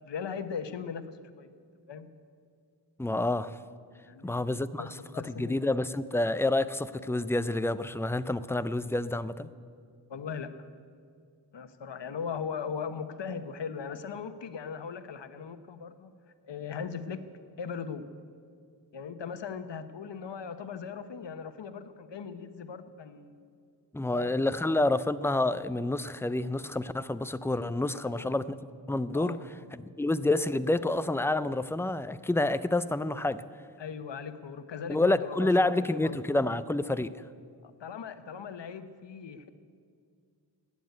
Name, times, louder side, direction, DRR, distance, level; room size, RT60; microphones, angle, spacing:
voice 1, 0.0-1.5 1.9-2.1 4.0-4.4 4.8-5.6 10.1-10.5 11.5-16.1 16.4-17.2 17.6-18.1 18.9-23.5 24.1-24.7 28.0-28.4 29.1-29.4 33.8-36.2 37.6-39.5, left 6 dB, 80° left, 10 dB, 1.0 m, -39 dB
voice 2, 3.0-3.6 4.2-9.5 23.9-28.6 28.9-29.4 29.7-33.4 34.9-37.1, left 2 dB, 5° left, 13 dB, 0.3 m, -28 dB
15.0 x 9.6 x 9.5 m, 2.2 s
wide cardioid pair, 130°, 42 cm